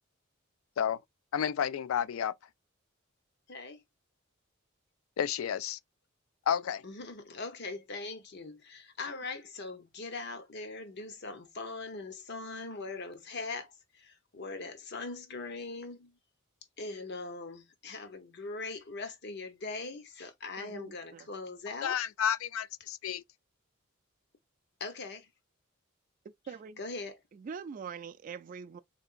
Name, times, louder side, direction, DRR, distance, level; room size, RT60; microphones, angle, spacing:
voice 1, 1.3-2.3 5.2-5.8 6.5-6.8 21.8-23.2, left 8 dB, 75° left, 0.3 m, -31 dB
voice 2, 3.5-3.8 6.8-16.2 16.8-22.0 24.8-25.3 26.8-27.2, left 3 dB, 55° left, 0.9 m, -41 dB
voice 3, 20.6-21.3 26.5-26.8 27.3-28.8, right 6 dB, 40° right, 0.3 m, -43 dB
3.7 x 3.4 x 2.5 m
head